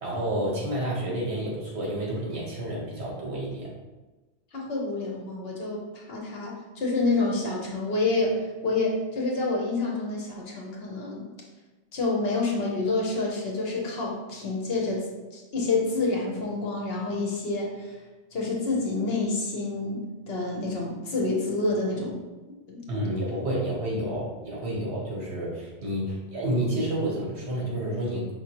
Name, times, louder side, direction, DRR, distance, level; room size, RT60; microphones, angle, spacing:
voice 1, 0.0-3.7 22.9-28.3, right 1 dB, 70° right, -4 dB, 1.5 m, -30 dB
voice 2, 4.5-11.2 11.9-15.1 15.3-17.9 18.3-22.2 22.7-22.8 23.3-23.4, left 3 dB, 60° left, -2 dB, 1.1 m, -28 dB
5.0 x 3.1 x 2.9 m, 1.2 s
omnidirectional pair, 1.2 m